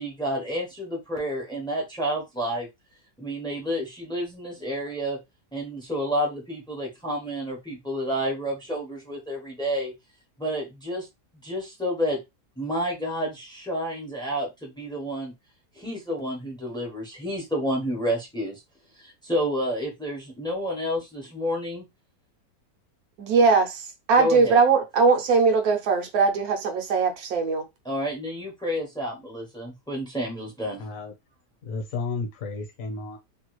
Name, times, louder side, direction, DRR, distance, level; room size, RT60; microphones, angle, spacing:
voice 1, 0.0-2.7 3.2-5.2 5.5-9.9 10.4-11.1 11.4-12.2 12.6-15.3 15.8-18.6 19.0-21.8 24.2-24.6 27.8-30.9, equal, 5° left, 0.4 m, -30 dB
voice 2, 23.2-27.7, right 4 dB, 65° right, 1.1 m, -21 dB
voice 3, 30.8-31.1 31.6-33.2, left 3 dB, 55° left, 1.2 m, -32 dB
3.0 x 2.3 x 3.0 m
omnidirectional pair, 1.8 m